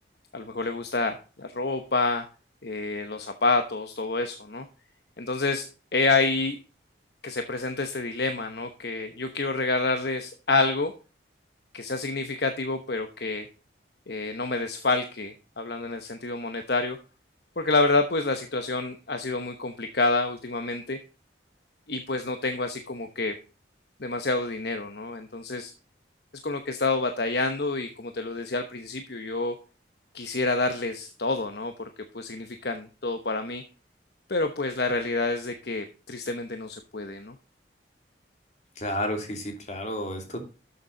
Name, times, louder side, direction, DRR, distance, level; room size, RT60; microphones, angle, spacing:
voice 1, 0.3-2.2 2.6-4.6 5.2-6.6 7.2-10.9 11.7-13.5 14.1-17.0 17.6-21.0 21.9-23.4 24.0-25.7 26.4-29.5 30.1-33.6 34.3-37.3, left 3 dB, 55° left, 7 dB, 1.0 m, -28 dB
voice 2, 38.8-40.4, equal, 40° left, 3 dB, 2.8 m, -31 dB
12.0 x 7.1 x 4.0 m, 0.34 s
head